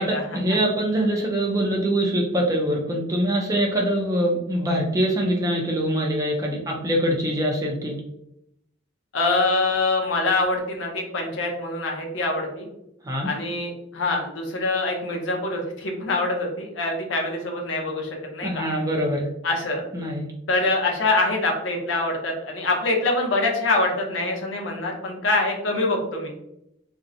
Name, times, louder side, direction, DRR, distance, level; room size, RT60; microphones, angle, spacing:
voice 1, 0.3-8.0 13.0-13.3 18.4-19.3 19.9-20.3, right 1 dB, 20° right, -1 dB, 0.4 m, -23 dB
voice 2, 9.1-12.7 13.3-18.6 19.4-19.8 20.5-26.3, left 2 dB, 85° left, 1 dB, 0.6 m, -24 dB
2.5 x 2.1 x 2.6 m, 0.81 s
head